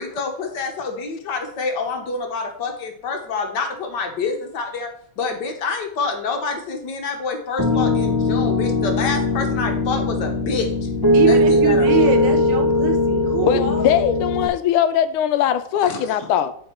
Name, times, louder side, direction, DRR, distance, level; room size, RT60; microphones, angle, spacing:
voice 1, 0.0-4.9 5.2-10.7 11.3-12.3 13.4-13.8 15.8-16.0, left 4 dB, 60° left, 1.5 m, -27 dB
Piano, 7.6-14.5, left 1 dB, 25° right, 0.5 m, -19 dB
voice 2, 11.1-13.6, right 9 dB, 65° right, 1.4 m, -24 dB
voice 3, 13.5-16.5, left 10 dB, 90° left, 1.5 m, -20 dB
8.5 x 4.5 x 4.4 m
omnidirectional pair, 2.3 m